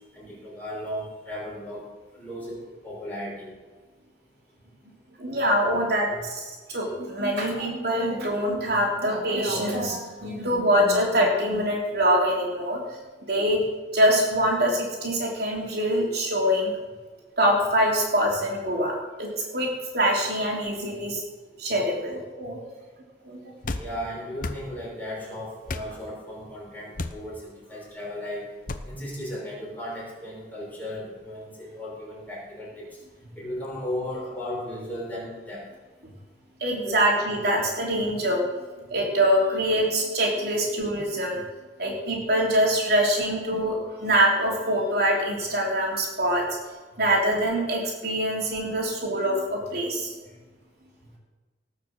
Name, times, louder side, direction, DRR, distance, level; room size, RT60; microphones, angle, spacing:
voice 1, 0.1-1.8 2.1-3.5 23.8-28.5 28.9-32.9 33.4-35.6 36.8-37.0, left 1 dB, 10° left, -5 dB, 6.0 m, -35 dB
voice 2, 5.2-12.8 13.3-13.7 13.9-16.7 17.4-18.9 19.2-21.2 21.6-22.6 23.2-23.6 36.6-38.5 38.9-41.4 41.8-46.4 47.0-50.1, equal, 60° right, -2 dB, 3.4 m, -24 dB
sound 1, 23.6-23.9 24.4-24.6 25.7-25.9 27.0-27.2 28.7-28.9, left 2 dB, 50° left, 0.9 m, -31 dB
19.0 x 6.6 x 7.5 m, 1.3 s
head